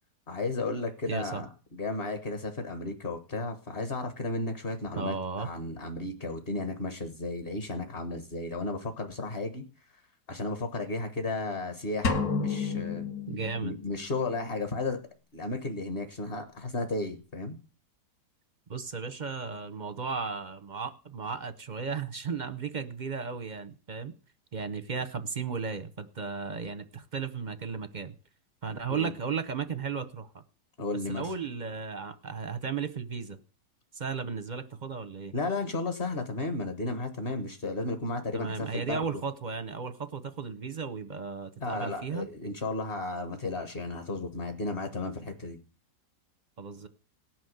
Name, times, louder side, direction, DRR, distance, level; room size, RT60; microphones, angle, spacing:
voice 1, 0.3-9.6 10.3-13.0 13.6-15.0 15.3-17.6 28.9-29.1 30.8-31.3 35.3-39.0 41.6-45.6, left 2 dB, 35° left, 1.3 m, -34 dB
voice 2, 1.1-1.4 5.0-5.5 13.3-13.7 18.7-24.1 24.5-28.2 28.6-30.4 31.1-33.4 33.9-35.3 38.3-42.3 46.6-46.9, right 5 dB, 40° right, 0.6 m, -35 dB
sound 1, 12.0-14.1, left 4 dB, 60° left, 1.8 m, -31 dB
18.5 x 6.1 x 7.9 m
omnidirectional pair, 1.9 m